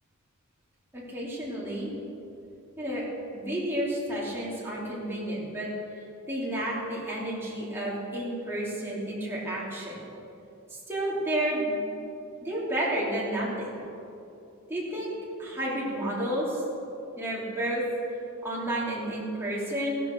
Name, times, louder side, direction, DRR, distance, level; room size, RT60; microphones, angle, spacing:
voice 1, 0.9-1.9 2.8-3.0 3.3-5.7 6.3-10.0 10.9-11.8 12.4-13.8 14.7-15.1 15.4-16.6 17.2-17.9 18.4-20.0, right 1 dB, 10° right, -6 dB, 3.0 m, -31 dB
14.5 x 13.0 x 4.5 m, 2.8 s
head